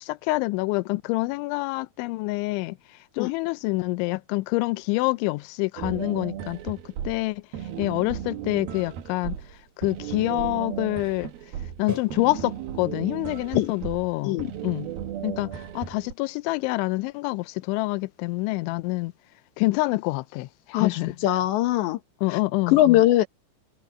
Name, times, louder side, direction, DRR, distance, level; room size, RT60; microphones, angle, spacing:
voice 1, 0.0-2.8 3.2-6.8 7.0-7.4 7.8-9.4 9.8-11.3 11.8-14.9 15.2-19.1 19.6-21.2 22.2-23.0, left 22 dB, 85° left, 2.7 m, -27 dB
sound 1, 5.8-16.1, right 10 dB, 65° right, 2.6 m, -35 dB
sound 2, 8.7-9.0 9.4-9.8 10.3-10.4 10.7-11.2 11.9-14.4, equal, 5° right, 6.3 m, -43 dB
voice 2, 20.7-22.0 22.3-22.4 22.7-23.3, left 14 dB, 65° left, 3.4 m, -21 dB
omnidirectional pair, 6.0 m